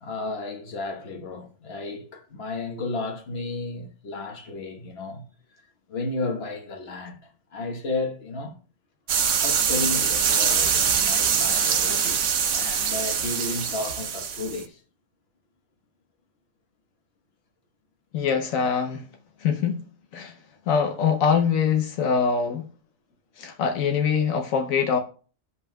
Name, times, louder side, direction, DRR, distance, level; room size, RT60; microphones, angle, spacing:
voice 1, 0.0-5.2 5.9-8.6 9.4-14.8, left 3 dB, 50° left, 1.4 m, -33 dB
sound 1, 9.1-14.6, right 7 dB, 80° right, 1.2 m, -23 dB
voice 2, 18.1-19.1 19.4-19.8 20.1-20.3 20.7-22.7 23.4-25.0, left 6 dB, 80° left, 1.1 m, -23 dB
15.0 x 5.5 x 2.2 m
omnidirectional pair, 1.4 m